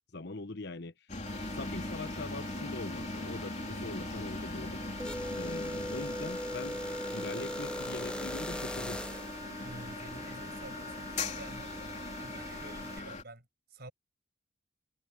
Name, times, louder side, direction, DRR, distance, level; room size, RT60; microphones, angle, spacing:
voice 1, 0.1-0.9 1.4-4.8 5.3-6.8 7.1-9.0, left 2 dB, 60° left, 1.0 m, -42 dB
sound 1, 1.1-13.2, left 3 dB, 40° left, 3.3 m, -40 dB
sound 2, 1.3-13.0, right 1 dB, 15° right, 1.6 m, -47 dB
sound 3, 5.0-9.4, left 1 dB, 5° left, 0.5 m, -38 dB
voice 2, 6.7-7.0 7.4-7.5 9.6-11.8 12.2-13.9, right 2 dB, 55° right, 6.1 m, -50 dB
head